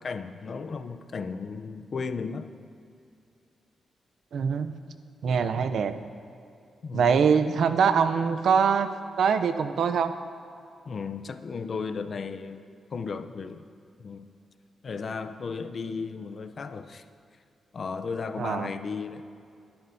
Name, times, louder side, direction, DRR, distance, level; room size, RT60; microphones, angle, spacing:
voice 1, 0.0-2.5 6.8-7.6 10.8-12.6 12.9-13.7 14.0-14.3 14.8-17.0 17.7-19.2, left 5 dB, 55° left, 10 dB, 0.6 m, -35 dB
voice 2, 4.3-4.7 5.2-6.0 6.9-8.9 9.2-10.1 18.4-18.7, right 6 dB, 75° right, 9 dB, 0.6 m, -23 dB
21.0 x 11.5 x 2.7 m, 2.4 s
cardioid pair, 95°, 0 cm